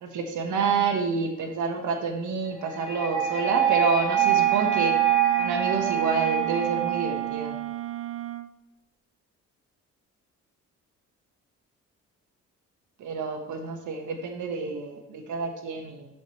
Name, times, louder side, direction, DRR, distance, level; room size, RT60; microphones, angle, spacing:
voice 1, 0.0-4.9 5.4-7.5 13.0-16.1, right 5 dB, 80° right, 3 dB, 1.6 m, -28 dB
sound 1, 2.6-7.6, right 10 dB, 20° left, 2.8 m, -25 dB
Wind instrument woodwind instrument, 4.1-8.5, right 13 dB, 50° right, 0.6 m, -34 dB
13.0 x 5.3 x 3.2 m, 0.98 s
cardioid pair, 90°, 30 cm